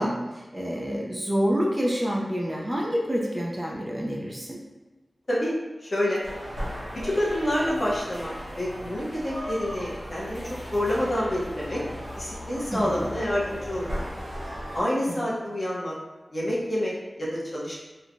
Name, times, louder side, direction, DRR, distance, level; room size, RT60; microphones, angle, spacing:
voice 1, 0.0-4.6 12.7-13.1 15.1-15.3, equal, 20° right, -3 dB, 0.4 m, -28 dB
voice 2, 5.8-6.2 7.0-11.8 12.2-13.9 14.7-15.9 16.3-17.7, left 1 dB, 45° left, -6 dB, 0.8 m, -28 dB
sound 1, 6.2-14.8, equal, 70° right, 0.9 m, -36 dB
3.0 x 2.1 x 2.5 m, 1.2 s
wide cardioid pair, 75°, 0 cm